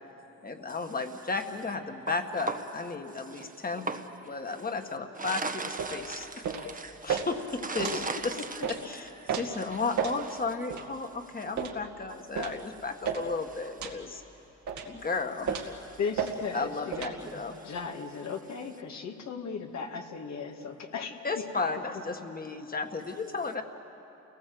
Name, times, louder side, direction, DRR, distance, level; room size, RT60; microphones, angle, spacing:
voice 1, 0.4-3.8 4.3-5.4 5.9-6.3 7.0-8.0 8.7-14.2 14.8-15.7 16.5-17.6 21.2-23.6, left 4 dB, 30° left, 1.9 m, -34 dB
voice 2, 2.1-2.7 3.0-4.7 5.1-10.4 11.3-11.5 12.1-12.2 13.5-13.7 15.8-16.0 17.2-17.8, right 3 dB, 25° right, 1.3 m, -40 dB
sound 1, 5.8-6.0 6.4-6.7 7.1-7.3 7.8-8.0 8.6-8.8 9.3-9.5 10.0-10.2 10.7-10.9 11.6-11.8 12.4-12.6 13.0-13.3 13.8-14.0 14.7-14.9 15.5-15.7 16.2-16.3 16.9-17.1, right 7 dB, 70° right, 2.2 m, -32 dB
voice 3, 16.0-17.1 17.7-21.2, left 5 dB, 65° left, 2.0 m, -36 dB
29.0 x 18.5 x 7.9 m
cardioid pair, 90°, 30 cm